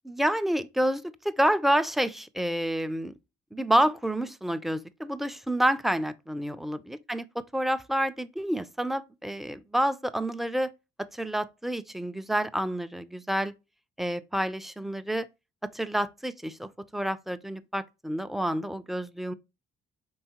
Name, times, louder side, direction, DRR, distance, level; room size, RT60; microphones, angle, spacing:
voice 1, 0.0-3.1 3.5-10.7 11.1-13.5 14.0-15.3 15.6-19.3, right 1 dB, ahead, 0.3 m, -28 dB
4.6 x 3.5 x 2.8 m
cardioid pair, 90°, 20 cm